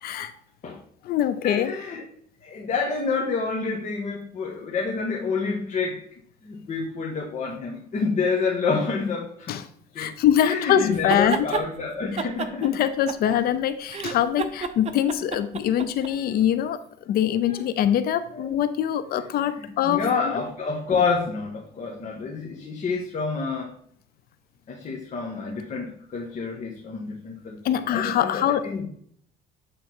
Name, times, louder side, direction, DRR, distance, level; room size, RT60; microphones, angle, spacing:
voice 1, 0.0-0.3 1.0-1.7 9.5-9.6 10.0-11.5 12.1-12.3 12.6-16.8 17.1-20.0 27.6-28.6, left 10 dB, 65° left, 13 dB, 0.5 m, -23 dB
voice 2, 1.4-2.0 2.4-6.0 6.4-9.5 9.9-10.1 10.4-12.8 14.0-14.1 17.4-17.6 18.3-18.5 19.4-23.7 24.7-28.9, left 4 dB, 45° left, -2 dB, 1.5 m, -28 dB
sound 1, 10.9-11.7 12.2-13.6 13.9-16.1, right 6 dB, 40° right, 0.7 m, -30 dB
8.4 x 3.7 x 4.4 m, 0.62 s
cardioid pair, 110°, 17 cm